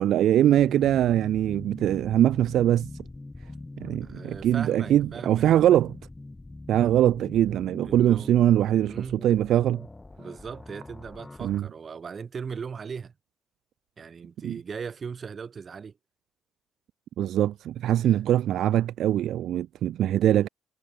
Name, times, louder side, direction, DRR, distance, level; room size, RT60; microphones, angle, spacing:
voice 1, 0.0-2.9 3.8-5.9 6.7-9.8 11.4-11.7 14.4-14.6 17.2-20.5, right 12 dB, 75° right, 0.3 m, -22 dB
sound 1, 0.6-11.6, left 2 dB, 15° left, 4.8 m, -43 dB
voice 2, 4.0-5.8 7.8-8.3 8.8-9.2 10.2-13.1 14.0-16.0 18.0-18.2, right 6 dB, 45° right, 3.8 m, -39 dB
cardioid pair, 90°, 0 cm